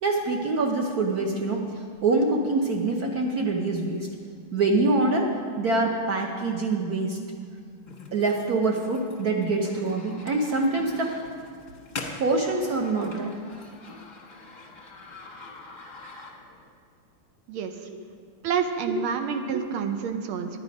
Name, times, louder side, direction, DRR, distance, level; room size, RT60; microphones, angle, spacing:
voice 1, 0.0-4.1 4.5-5.3 5.6-7.2 8.1-11.2 12.2-13.3 17.9-18.0, right 3 dB, 60° right, 1 dB, 1.1 m, -25 dB
sound 1, 7.9-16.7, left 3 dB, 30° left, 0.9 m, -44 dB
voice 2, 18.4-20.5, right 7 dB, 75° right, 6 dB, 1.6 m, -28 dB
10.5 x 9.4 x 5.2 m, 2.1 s
omnidirectional pair, 2.4 m